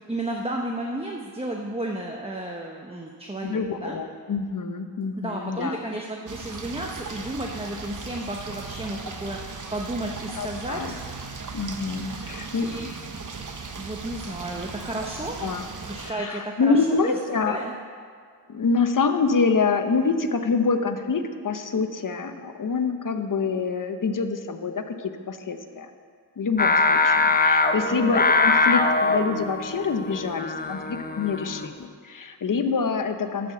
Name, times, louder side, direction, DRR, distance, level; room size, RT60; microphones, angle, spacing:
voice 1, 0.1-4.0 5.2-9.4 9.7-10.8 12.6-12.9 13.7-15.4 15.9-17.2 17.4-17.7 27.9-28.2, right 1 dB, 15° right, 0 dB, 0.8 m, -32 dB
voice 2, 3.4-5.8 10.4-10.9 11.5-12.7 15.4-15.7 16.0-17.6 18.5-25.9 26.4-33.5, left 4 dB, 50° left, 7 dB, 0.8 m, -26 dB
sound 1, 6.3-16.1, right 4 dB, 45° right, 1.0 m, -37 dB
Singing, 26.6-31.8, left 3 dB, 20° left, 0.6 m, -22 dB
12.5 x 5.1 x 7.9 m, 2.1 s
wide cardioid pair, 90°, 41 cm